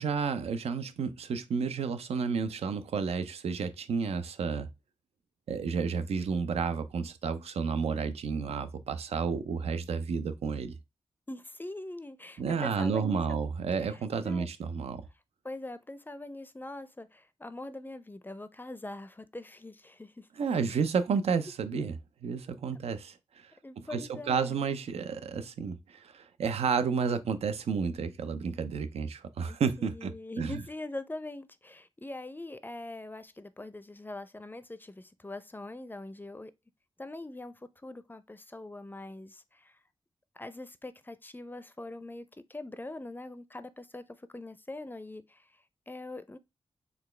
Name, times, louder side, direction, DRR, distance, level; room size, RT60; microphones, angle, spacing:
voice 1, 0.0-4.7 5.5-10.7 12.4-15.0 20.4-21.9 22.2-23.2 23.8-30.1 30.4-30.6, right 5 dB, 80° right, 0.5 m, -31 dB
voice 2, 11.3-13.4 13.8-14.5 15.4-20.3 20.7-20.8 21.7-21.8 23.6-24.6 29.5-36.5 37.0-39.8 40.4-46.4, left 2 dB, 20° left, 0.4 m, -43 dB
4.0 x 2.3 x 3.2 m
cardioid pair, 45°, 10 cm